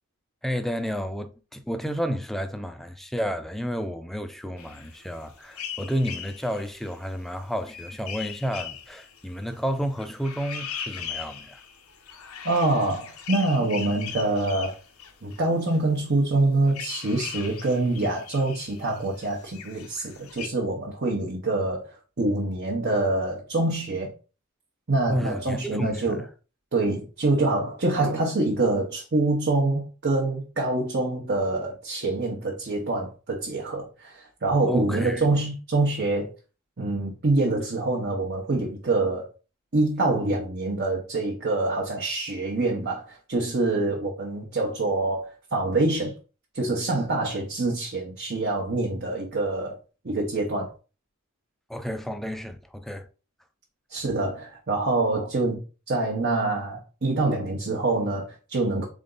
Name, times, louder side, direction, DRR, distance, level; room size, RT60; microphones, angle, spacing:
voice 1, 0.4-11.6 25.1-26.3 34.7-35.3 51.7-53.1, equal, ahead, 0.4 m, -31 dB
sound 1, 4.6-15.8 16.1-16.2 16.4-20.5, left 7 dB, 70° left, 0.7 m, -40 dB
voice 2, 12.4-14.8 15.2-24.1 24.9-26.2 26.7-36.3 36.8-39.3 39.7-46.2 46.5-49.8 50.0-50.7 53.9-58.8, right 2 dB, 50° right, 0.9 m, -25 dB
3.8 x 3.6 x 3.8 m
head